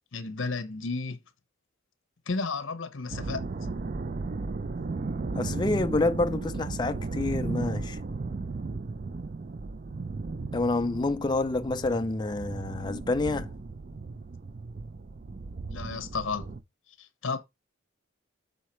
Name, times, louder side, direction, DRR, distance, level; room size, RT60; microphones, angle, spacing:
voice 1, 0.1-1.2 2.3-3.4 15.7-16.5 17.0-17.4, left 4 dB, 70° left, 0.9 m, -32 dB
sound 1, 3.1-16.6, right 3 dB, 40° right, 0.4 m, -35 dB
voice 2, 5.3-8.0 10.5-13.5, left 2 dB, 20° left, 0.4 m, -28 dB
6.4 x 4.2 x 4.3 m
head